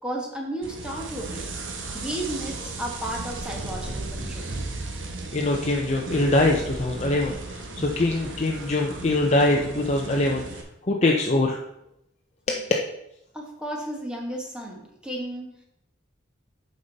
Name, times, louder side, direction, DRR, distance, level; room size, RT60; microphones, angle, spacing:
voice 1, 0.0-1.5 1.9-4.6 13.3-15.5, right 1 dB, 5° right, -1 dB, 1.3 m, -33 dB
sound 1, 0.6-10.6, right 2 dB, 85° right, 1.1 m, -36 dB
sound 2, 3.6-6.1, right 2 dB, 55° right, 1.8 m, -36 dB
voice 2, 5.3-11.6 12.5-12.7, left 2 dB, 35° left, 1 dB, 0.6 m, -23 dB
8.6 x 5.4 x 4.0 m, 0.82 s
head